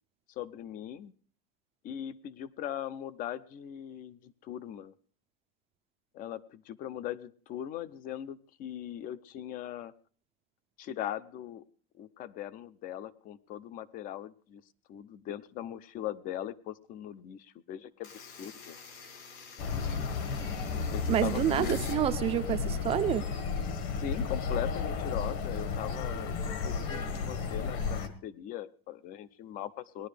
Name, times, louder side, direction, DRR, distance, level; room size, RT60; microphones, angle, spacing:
voice 1, 0.3-1.1 1.8-4.9 6.1-9.9 10.8-11.6 11.9-14.6 14.9-18.8 20.9-22.0 23.6-30.1, left 11 dB, 30° left, 18 dB, 0.5 m, -40 dB
sound 1, 18.0-22.0, left 5 dB, 75° left, 3.0 m, -48 dB
sound 2, 19.6-28.1, left 5 dB, 50° left, 1.6 m, -33 dB
voice 2, 21.1-23.3, right 10 dB, 20° right, 10 dB, 0.5 m, -28 dB
19.0 x 11.0 x 3.3 m, 0.43 s
supercardioid pair, 165°, 30 cm